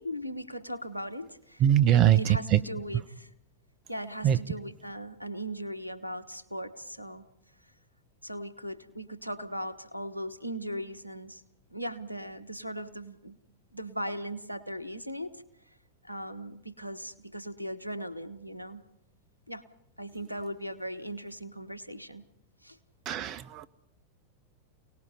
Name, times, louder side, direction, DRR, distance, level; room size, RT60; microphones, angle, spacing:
voice 1, 0.0-3.3 3.9-7.2 7.6-7.7 8.2-11.4 11.7-13.4 13.7-15.4 16.0-18.8 19.5-19.7 20.0-22.2 22.6-22.8, equal, 90° right, 15 dB, 1.2 m, -38 dB
voice 2, 1.6-2.6 4.2-4.4 23.1-23.7, right 11 dB, 35° right, 14 dB, 0.9 m, -22 dB
29.0 x 19.0 x 5.6 m, 0.76 s
figure-of-eight pair, 90°, 0 cm